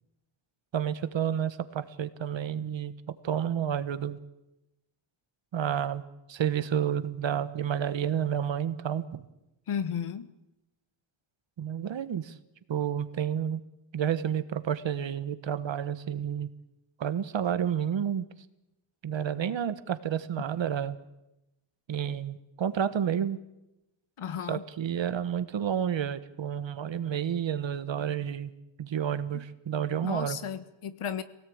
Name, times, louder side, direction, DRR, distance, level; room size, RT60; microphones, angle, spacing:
voice 1, 0.7-2.9 3.2-4.2 5.5-6.0 6.3-9.1 11.6-12.4 12.7-13.6 13.9-16.5 17.0-18.3 19.0-21.0 21.9-23.4 24.5-28.5 28.8-30.4, right 9 dB, 65° right, 12 dB, 1.3 m, -30 dB
voice 2, 9.7-10.3 24.2-24.6 29.3-29.4 30.0-31.2, left 8 dB, 90° left, 12 dB, 1.6 m, -34 dB
24.0 x 17.5 x 8.7 m, 0.93 s
wide cardioid pair, 175°, 49 cm